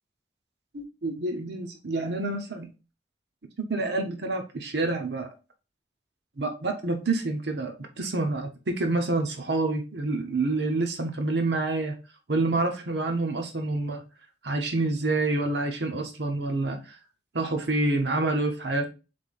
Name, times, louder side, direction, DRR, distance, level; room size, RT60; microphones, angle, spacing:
voice 1, 0.7-2.7 3.7-5.3 6.4-11.9 12.3-14.0 14.4-17.0 17.3-18.9, right 2 dB, 70° right, 5 dB, 0.9 m, -27 dB
3.7 x 3.4 x 4.1 m, 0.30 s
head